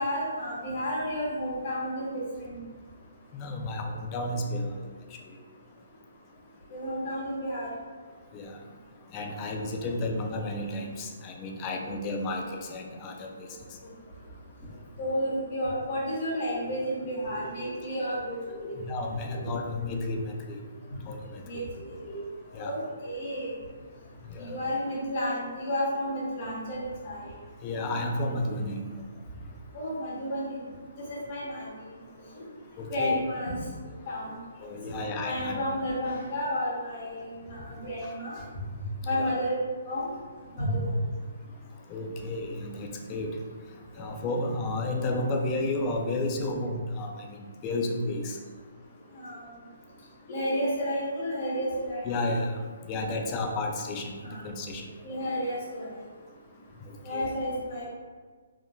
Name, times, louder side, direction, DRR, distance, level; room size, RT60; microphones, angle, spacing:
voice 1, 0.0-2.6 6.7-7.7 12.3-12.4 15.0-18.8 19.3-19.5 21.4-22.2 22.6-23.5 24.4-27.2 29.7-30.6 31.1-32.0 32.9-33.6 34.1-34.4 34.9-35.0 35.2-38.4 39.0-39.6 39.8-40.1 40.6-40.9 44.0-44.1 49.1-49.4 50.3-52.1 54.2-54.4 55.0-55.9 57.0-57.9, equal, 45° left, -6 dB, 1.1 m, -31 dB
voice 2, 3.3-4.9 8.3-8.6 9.1-13.5 18.8-20.6 21.1-21.6 22.5-22.7 24.3-24.6 27.6-28.8 32.8-33.2 34.6-35.6 38.4-38.5 39.1-39.3 41.9-43.3 44.0-48.4 52.0-52.6 52.8-54.1 54.4-54.8 56.8-57.3, left 2 dB, 25° left, 2 dB, 0.4 m, -32 dB
3.6 x 2.4 x 2.3 m, 1.5 s
hypercardioid pair, 150°, 0 cm